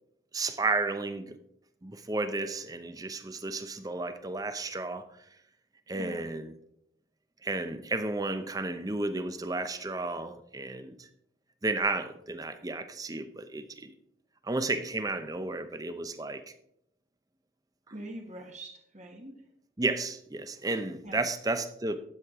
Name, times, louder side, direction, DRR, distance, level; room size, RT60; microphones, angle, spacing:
voice 1, 0.3-1.4 1.8-5.1 5.9-6.5 7.4-11.1 11.6-13.9 14.4-16.4 19.8-22.0, right 3 dB, 20° right, 10 dB, 0.7 m, -32 dB
voice 2, 5.9-6.2 17.9-19.4 21.0-21.2, right 1 dB, 40° right, 2 dB, 1.3 m, -43 dB
12.5 x 8.4 x 3.7 m, 0.74 s
head